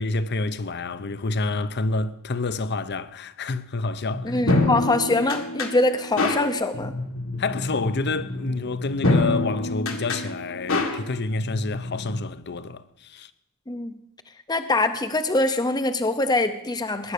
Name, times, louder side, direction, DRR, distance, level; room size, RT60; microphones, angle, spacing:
voice 1, 0.0-4.4 7.4-13.3, left 3 dB, 50° left, 0.8 m, -28 dB
sound 1, 4.1-12.2, left 2 dB, 70° left, 1.9 m, -27 dB
voice 2, 4.2-6.9 13.7-13.9 14.5-17.1, left 2 dB, 20° left, 0.7 m, -23 dB
20.0 x 10.5 x 6.6 m
head